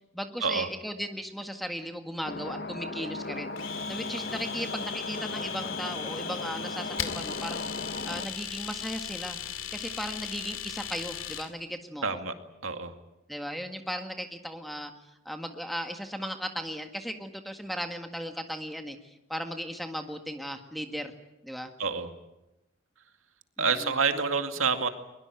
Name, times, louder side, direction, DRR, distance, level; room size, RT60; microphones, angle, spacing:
voice 1, 0.1-7.6 8.0-9.4 9.7-12.2 13.3-14.9 15.3-21.1 21.4-21.7 23.6-24.0, equal, ahead, 6 dB, 1.7 m, -37 dB
sound 1, 2.2-8.3, left 2 dB, 50° left, 1.1 m, -37 dB
Domestic sounds home sounds, 3.6-11.5, left 9 dB, 80° left, 2.4 m, -38 dB
voice 2, 12.0-12.4 12.6-12.9 21.8-22.1 23.6-24.9, right 5 dB, 85° right, 7 dB, 2.2 m, -27 dB
22.0 x 22.0 x 9.0 m, 0.93 s
head